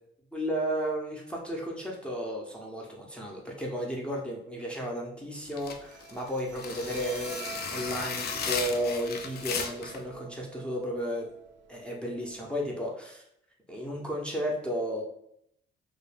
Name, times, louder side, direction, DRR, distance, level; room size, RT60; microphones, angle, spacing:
voice 1, 0.3-11.3 11.7-13.2 13.7-15.0, equal, 5° left, -3 dB, 0.6 m, -33 dB
sound 1, 5.5-10.0, left 6 dB, 55° left, 0.4 m, -35 dB
Bowed string instrument, 5.7-12.7, right 6 dB, 65° right, 0.5 m, -47 dB
2.2 x 2.2 x 3.2 m, 0.73 s
cardioid pair, 90°, 20 cm